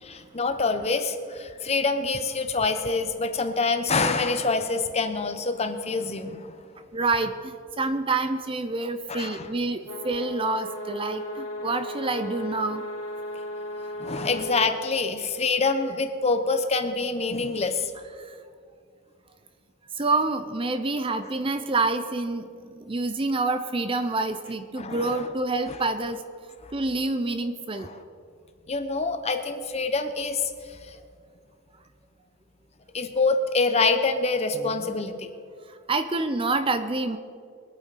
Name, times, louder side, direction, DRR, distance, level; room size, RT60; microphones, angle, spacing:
voice 1, 0.0-6.5 9.1-9.5 14.0-17.9 24.8-25.2 25.7-25.8 26.6-26.7 27.8-28.0 28.7-30.9 32.9-35.3, left 3 dB, 30° left, 7 dB, 0.9 m, -26 dB
voice 2, 6.9-12.8 18.2-18.4 20.0-26.2 26.7-27.9 34.5-34.9 35.9-37.2, right 3 dB, 25° right, 9 dB, 0.6 m, -27 dB
sound 1, 9.8-14.7, equal, 85° left, 2.5 m, -35 dB
22.5 x 8.9 x 4.2 m, 2.3 s
head